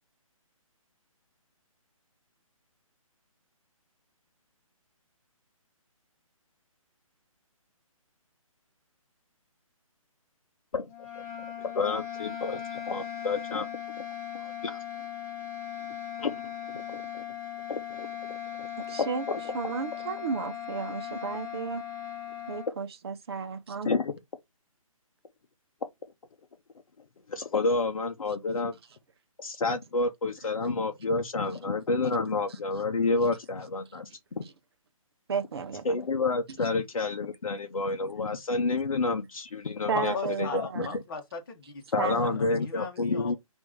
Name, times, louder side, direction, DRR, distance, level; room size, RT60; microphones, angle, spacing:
sound 1, 10.9-22.7, left 9 dB, 20° left, 2.1 m, -38 dB
voice 1, 11.6-13.7 14.4-14.8 16.2-16.4 16.7-17.2 17.7-18.1 19.0-19.4 23.8-24.1 27.3-28.7 29.4-34.1 34.4-34.5 35.8-40.9 41.9-43.4, left 3 dB, 70° left, 0.7 m, -29 dB
voice 2, 18.8-19.3 19.5-21.8 22.5-23.9 34.4-34.5 35.3-36.0 39.9-41.0 42.0-42.4, right 5 dB, 45° right, 0.8 m, -33 dB
voice 3, 39.9-43.4, left 5 dB, 40° left, 1.2 m, -37 dB
4.5 x 2.6 x 3.7 m
figure-of-eight pair, 145°, 18 cm